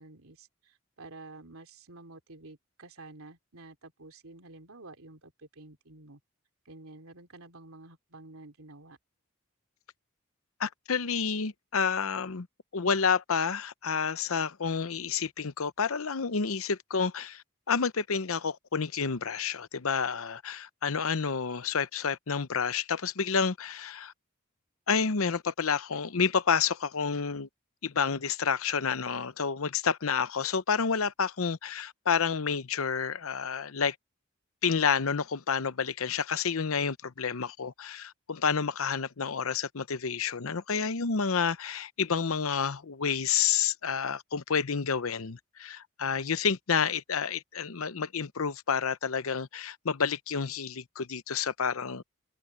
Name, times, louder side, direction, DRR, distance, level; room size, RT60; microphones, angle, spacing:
voice 1, 0.0-6.2 6.6-9.0, right 2 dB, 90° right, 3.1 m, -50 dB
voice 2, 10.6-12.5 12.7-24.1 24.9-27.5 27.8-34.0 34.6-52.0, left 6 dB, 80° left, 0.8 m, -29 dB
head